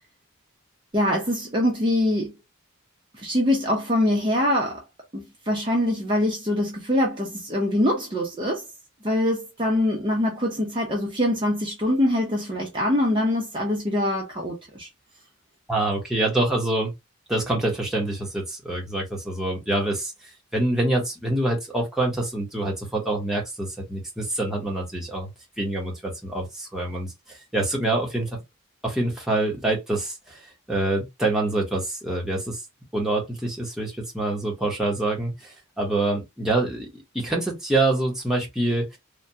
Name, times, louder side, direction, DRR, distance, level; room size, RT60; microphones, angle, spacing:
voice 1, 0.9-2.3 3.1-4.8 5.1-8.6 9.0-14.9, left 1 dB, 25° right, 0.7 m, -24 dB
voice 2, 15.7-16.9 17.3-20.1 20.5-25.3 25.6-28.4 28.8-30.4 30.7-32.6 32.9-39.0, right 2 dB, ahead, 1.0 m, -26 dB
3.3 x 2.2 x 2.7 m
head